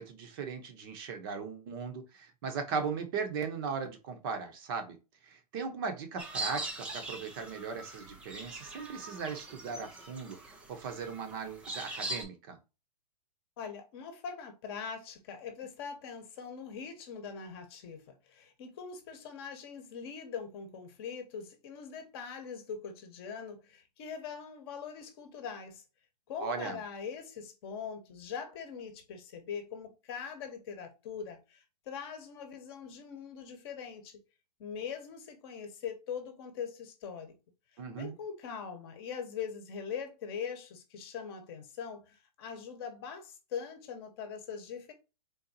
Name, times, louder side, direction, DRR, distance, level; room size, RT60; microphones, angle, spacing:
voice 1, 0.0-5.0 5.2-10.4 10.7-12.6 26.4-26.8 37.8-38.2, right 5 dB, 35° right, 0.7 m, -38 dB
sound 1, 6.2-12.2, right 2 dB, 5° right, 0.3 m, -41 dB
voice 2, 13.6-25.8 26.3-34.2 34.6-37.3 38.0-44.9, left 6 dB, 35° left, 0.9 m, -42 dB
3.9 x 3.5 x 2.7 m
hypercardioid pair, 155°, 21 cm